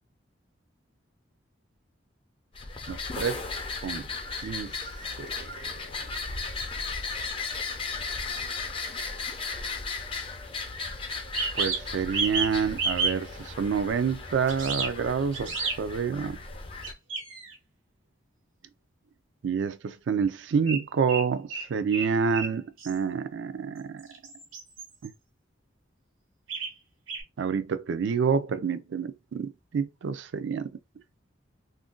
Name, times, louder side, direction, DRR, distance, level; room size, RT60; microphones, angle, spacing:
sound 1, 2.5-16.9, left 4 dB, 25° left, 0.4 m, -36 dB
voice 1, 2.9-3.5 3.8-4.1 4.4-4.7 5.2-5.4 11.5-16.4 19.4-24.1 27.4-30.7, right 6 dB, 70° right, 0.4 m, -28 dB
sound 2, 9.1-9.2 11.2-12.5 12.8-13.1 14.5-14.9 15.3-15.8 16.8-17.5 20.7-20.8 21.1-22.1 22.3-22.5 22.8-23.0 24.0-25.1 26.5-26.7 27.1-27.2, right 4 dB, 90° right, 1.1 m, -30 dB
2.5 x 2.1 x 3.6 m
head